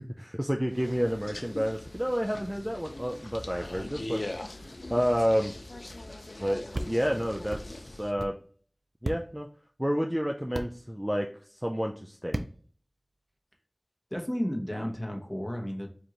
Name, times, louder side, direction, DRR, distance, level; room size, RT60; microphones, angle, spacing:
voice 1, 0.0-4.3 4.9-5.5 6.4-8.3 9.0-9.5 9.8-12.4, equal, 10° right, 2 dB, 0.4 m, -30 dB
sound 1, 0.7-8.1, left 1 dB, 80° left, 0.4 m, -41 dB
sound 2, 6.7-6.9 7.5-7.6 8.2-8.3 9.0-9.2 10.5-10.7 12.3-12.5, right 1 dB, 85° right, 0.3 m, -32 dB
voice 2, 14.1-15.9, equal, 10° left, 1 dB, 1.0 m, -32 dB
4.9 x 2.5 x 3.0 m, 0.44 s
wide cardioid pair, 40°, 0 cm